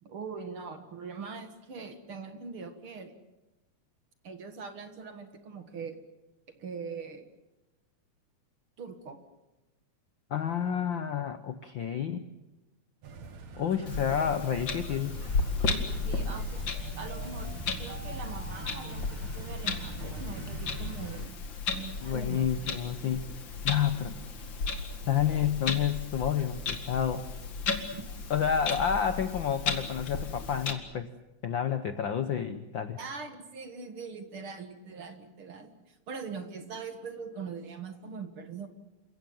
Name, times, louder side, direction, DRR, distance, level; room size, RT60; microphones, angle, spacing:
voice 1, 0.0-3.2 4.2-6.0 6.6-7.3 8.8-9.2 16.0-16.6 17.0-17.5 17.8-21.4 21.7-23.0 27.9-28.0 33.0-38.7, right 5 dB, 50° right, 8 dB, 2.3 m, -42 dB
voice 2, 10.3-12.2 13.6-15.3 22.0-23.3 23.6-24.2 25.1-27.3 28.3-31.1 31.4-33.0, left 8 dB, 70° left, 10 dB, 1.1 m, -29 dB
sound 1, 13.0-21.3, right 4 dB, 65° right, 2.9 m, -43 dB
Clock, 13.9-30.7, left 4 dB, 40° left, 2.5 m, -35 dB
28.5 x 16.5 x 9.3 m, 1.0 s
omnidirectional pair, 3.4 m